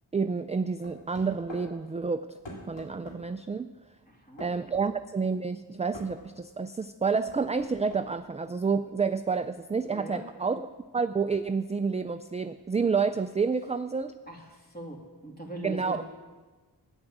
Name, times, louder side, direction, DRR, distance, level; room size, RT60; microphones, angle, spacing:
voice 1, 0.1-2.3 2.7-3.7 4.4-14.1 15.6-16.0, right 5 dB, 20° right, 10 dB, 0.3 m, -29 dB
sound 1, 0.8-1.7 2.4-3.2 4.4-4.9 5.9-6.1 7.3-8.1, left 1 dB, 90° left, 2.7 m, -44 dB
voice 2, 4.1-4.4 9.9-10.2 14.3-16.0, right 1 dB, 20° left, -1 dB, 2.6 m, -41 dB
9.7 x 9.1 x 7.3 m, 1.3 s
wide cardioid pair, 55°, 42 cm